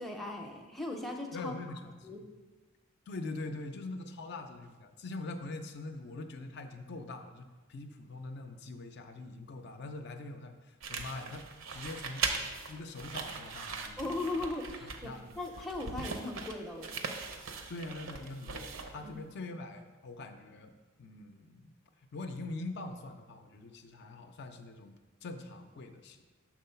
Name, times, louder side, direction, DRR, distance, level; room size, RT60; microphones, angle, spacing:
voice 1, 0.0-1.5 2.0-2.2 14.0-16.9 19.0-19.1, left 2 dB, ahead, 0 dB, 0.5 m, -38 dB
voice 2, 1.3-2.3 3.1-12.3 12.7-14.4 14.8-15.5 17.7-26.2, left 2 dB, 55° left, 6 dB, 0.4 m, -43 dB
sound 1, 10.8-19.2, right 4 dB, 65° right, 0.6 m, -40 dB
6.1 x 3.8 x 5.6 m, 1.3 s
head